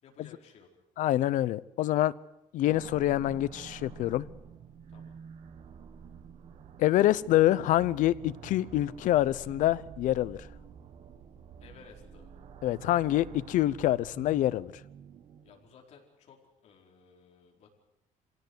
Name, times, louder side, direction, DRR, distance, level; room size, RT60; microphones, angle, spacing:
voice 1, 0.0-0.8 4.9-5.2 11.6-12.3 15.4-17.7, left 6 dB, 55° left, 0 dB, 4.7 m, -56 dB
voice 2, 1.0-2.1 2.5-4.2 6.8-10.4 12.6-14.7, left 14 dB, 70° left, 18 dB, 0.7 m, -26 dB
sound 1, 2.7-15.7, right 7 dB, 50° right, 1.4 m, -49 dB
26.0 x 17.0 x 8.1 m, 0.85 s
cardioid pair, 175°, 14 cm